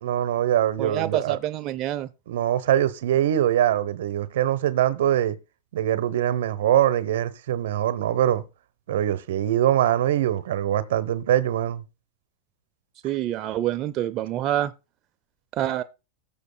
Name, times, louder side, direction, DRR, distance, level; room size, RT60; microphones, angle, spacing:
voice 1, 0.0-1.4 2.3-5.4 5.7-8.4 8.9-11.8, right 11 dB, 80° right, 0.8 m, -23 dB
voice 2, 0.8-2.1 13.0-14.7 15.5-15.8, right 12 dB, 40° right, 0.5 m, -27 dB
18.5 x 7.1 x 2.2 m
hypercardioid pair, 120°, 0 cm